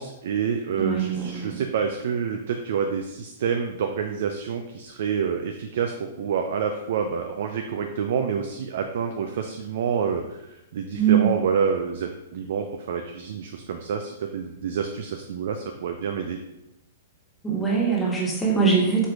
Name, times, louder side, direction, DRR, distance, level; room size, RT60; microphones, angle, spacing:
voice 1, 0.0-16.4, right 6 dB, 60° right, 5 dB, 0.4 m, -28 dB
voice 2, 0.8-1.5 11.0-11.3 17.4-19.1, right 6 dB, 15° left, -4 dB, 1.4 m, -22 dB
4.8 x 4.4 x 2.4 m, 0.91 s
figure-of-eight pair, 110°, 0 cm